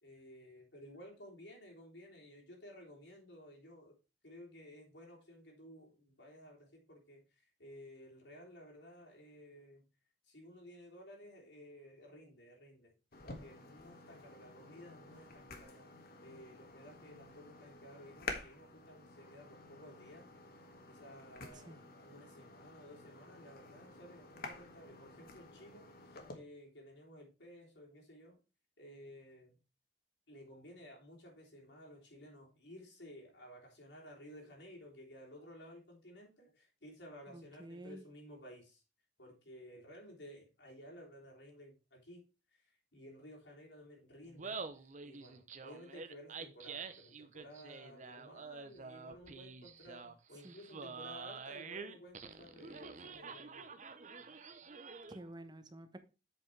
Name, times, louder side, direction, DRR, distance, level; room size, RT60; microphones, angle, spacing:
voice 1, 0.0-3.9 4.2-9.9 10.3-12.9 13.2-15.9 16.2-20.3 20.9-28.4 28.8-29.6 30.3-38.8 39.2-42.2 42.9-44.6 45.0-53.7, equal, 85° left, 3.4 m, -55 dB
sound 1, 13.1-26.4, left 3 dB, 55° left, 1.6 m, -50 dB
voice 2, 21.5-21.8 37.3-38.0 50.4-50.6 55.1-56.0, right 1 dB, 25° right, 1.0 m, -50 dB
Laughter, 44.2-55.3, right 5 dB, 45° right, 0.8 m, -48 dB
8.0 x 5.3 x 4.6 m
head